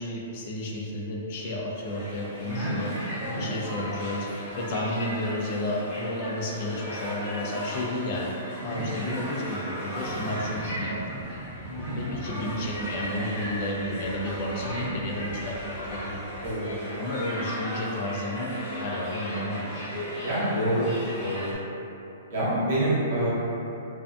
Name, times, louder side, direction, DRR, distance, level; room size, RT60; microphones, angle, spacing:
voice 1, 0.0-2.9 3.3-8.3 8.6-11.0 11.8-16.3 17.0-19.9, left 1 dB, 40° left, -3 dB, 0.3 m, -32 dB
sound 1, 1.8-21.5, equal, 5° left, 0.8 m, -36 dB
voice 2, 2.4-2.7 3.2-3.5 8.6-8.9 11.7-12.0 14.6-14.9 16.4-16.7 20.2-20.8 21.2-21.4 22.3-23.3, right 1 dB, 75° right, -9 dB, 0.9 m, -28 dB
sound 2, 9.9-16.5, right 1 dB, 40° right, 0.9 m, -43 dB
2.5 x 2.1 x 2.4 m, 2.9 s
hypercardioid pair, 165°, 0 cm